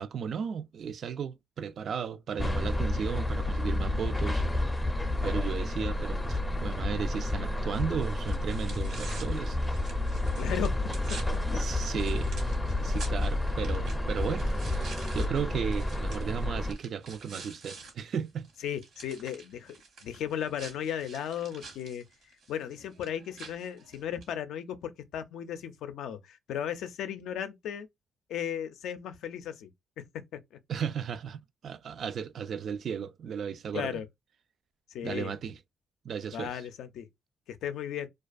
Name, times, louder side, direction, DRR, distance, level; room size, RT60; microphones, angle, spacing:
voice 1, 0.0-4.4 5.2-9.6 11.5-12.3 12.8-18.5 30.7-34.0 35.0-35.6 36.0-36.6, right 7 dB, 60° right, 0.3 m, -35 dB
sound 1, 2.4-16.7, left 1 dB, 10° left, 0.4 m, -30 dB
sound 2, 7.7-17.9 18.3-24.3, right 4 dB, 75° right, 1.1 m, -48 dB
voice 2, 10.4-10.8 11.1-11.6 18.6-19.8 20.0-22.0 22.5-27.9 28.3-29.7 30.0-30.4 33.7-34.1 34.9-35.3 36.3-37.1 37.5-38.1, left 9 dB, 80° left, 0.4 m, -36 dB
2.3 x 2.3 x 2.4 m
cardioid pair, 90°, 0 cm